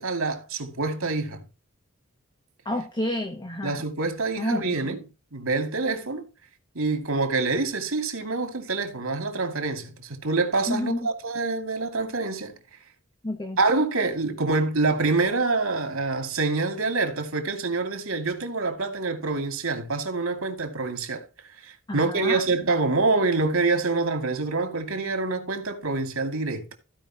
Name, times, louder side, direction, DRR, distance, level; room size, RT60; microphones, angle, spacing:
voice 1, 0.0-1.5 3.6-5.0 5.3-6.3 6.7-12.6 13.6-21.2 21.6-26.6, right 3 dB, 90° right, 2.5 m, -26 dB
voice 2, 2.6-3.8 4.4-5.0 10.7-11.1 13.2-13.6 21.9-22.4, left 1 dB, 20° left, 1.3 m, -30 dB
16.0 x 5.3 x 2.9 m
head